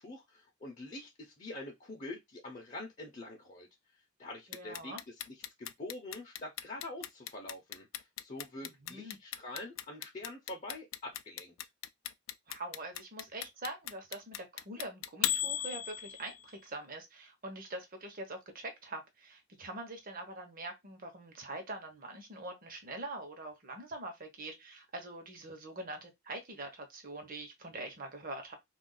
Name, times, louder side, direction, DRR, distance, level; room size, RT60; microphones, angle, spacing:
voice 1, 0.0-3.7 4.2-11.5, left 2 dB, 35° left, 0.7 m, -45 dB
Clock, 4.5-16.5, left 11 dB, 80° left, 0.3 m, -37 dB
voice 2, 4.5-5.0 8.6-9.2 12.5-28.6, right 2 dB, 45° right, 0.9 m, -44 dB
2.5 x 2.3 x 3.8 m
head